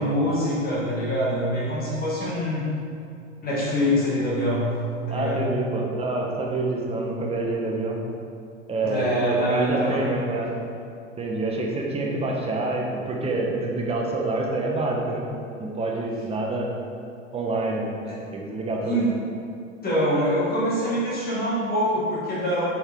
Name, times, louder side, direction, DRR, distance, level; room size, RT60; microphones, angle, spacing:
voice 1, 0.0-2.7 3.4-4.7 5.1-5.4 8.8-10.0 18.1-18.2 18.8-19.1 19.8-22.7, equal, 25° left, -7 dB, 1.5 m, -24 dB
voice 2, 5.1-8.0 8.7-10.5 11.2-15.2 15.6-16.7 17.3-18.0 18.3-19.0, right 2 dB, 15° right, -1 dB, 1.1 m, -27 dB
9.0 x 4.5 x 3.6 m, 2.4 s
hypercardioid pair, 115°, 38 cm